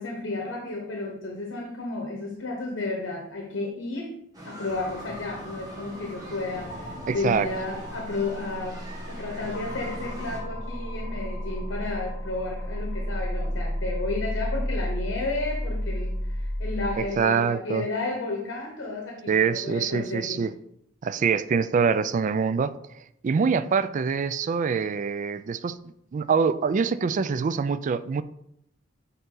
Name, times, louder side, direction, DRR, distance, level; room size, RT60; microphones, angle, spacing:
voice 1, 0.0-4.2 4.4-8.8 9.1-20.4, left 2 dB, 85° left, 1.0 m, -32 dB
sound 1, 4.3-10.4, equal, 20° right, 1.9 m, -43 dB
sound 2, 4.7-17.0, equal, 55° left, 2.9 m, -33 dB
voice 2, 7.1-7.5 17.0-17.9 19.3-20.5 21.0-28.2, right 5 dB, 40° right, 0.3 m, -25 dB
8.0 x 4.0 x 3.8 m
head